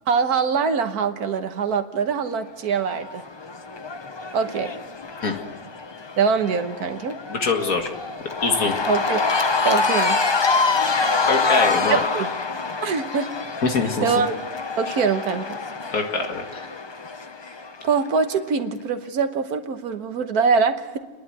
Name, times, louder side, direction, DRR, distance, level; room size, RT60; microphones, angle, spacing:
voice 1, 0.1-3.2 4.3-4.7 6.2-7.2 8.9-9.2 9.6-10.2 11.9-12.3 12.8-13.3 14.0-14.3 14.8-15.6 17.8-21.0, right 5 dB, 75° right, 8 dB, 1.6 m, -23 dB
Cheering / Crowd, 2.8-18.1, left 4 dB, 40° left, 0.4 m, -26 dB
voice 2, 7.3-7.9 8.4-8.8 11.2-12.0 13.6-14.1 15.9-16.7, left 4 dB, 65° left, 3 dB, 2.3 m, -23 dB
29.0 x 11.5 x 7.9 m, 1.3 s
omnidirectional pair, 1.6 m